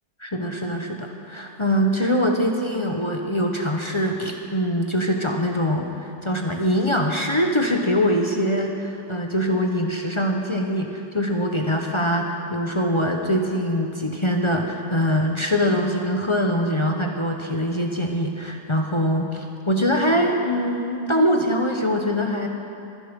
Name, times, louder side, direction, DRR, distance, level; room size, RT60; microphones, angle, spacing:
voice 1, 0.2-22.5, equal, 25° left, 1 dB, 1.1 m, -23 dB
24.5 x 11.0 x 5.3 m, 2.7 s
omnidirectional pair, 1.2 m